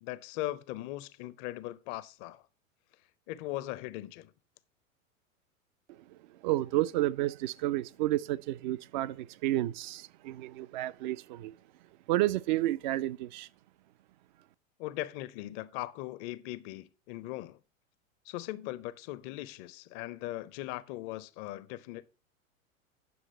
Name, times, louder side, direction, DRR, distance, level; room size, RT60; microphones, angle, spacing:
voice 1, 0.0-2.4 3.3-4.3 14.8-17.6 18.3-22.1, left 16 dB, 35° left, 0.6 m, -39 dB
voice 2, 6.4-11.5 12.1-13.5, right 15 dB, 35° right, 0.4 m, -31 dB
9.4 x 6.2 x 4.3 m
figure-of-eight pair, 95°, 41 cm